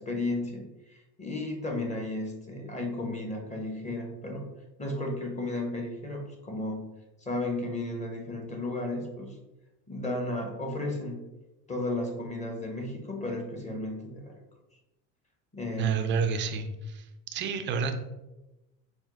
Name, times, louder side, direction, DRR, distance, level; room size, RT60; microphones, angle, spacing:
voice 1, 0.0-4.4 4.8-6.9 7.2-9.4 9.9-11.3 11.7-14.3 15.5-16.2, left 2 dB, 15° left, 1 dB, 0.8 m, -34 dB
voice 2, 15.8-17.1 17.3-18.0, right 6 dB, 25° right, 6 dB, 0.3 m, -29 dB
4.5 x 2.1 x 3.6 m, 0.99 s
hypercardioid pair, 75°, 50 cm